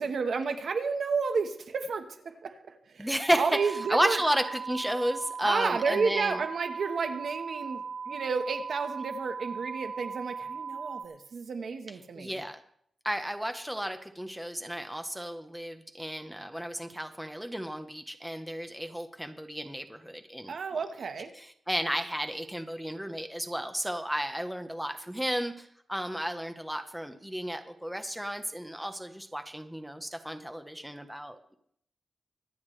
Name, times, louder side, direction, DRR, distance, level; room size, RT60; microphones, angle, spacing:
voice 1, 0.0-4.2 5.4-12.3 20.5-21.3, right 5 dB, 60° right, 7 dB, 1.2 m, -31 dB
voice 2, 3.0-3.5 3.9-6.4 12.2-12.6 13.0-20.8 21.4-31.5, equal, 5° right, 7 dB, 0.9 m, -33 dB
sound 1, 3.5-11.0, right 5 dB, 35° right, 0.6 m, -38 dB
24.5 x 9.5 x 3.2 m, 0.68 s
wide cardioid pair, 140°, 0 cm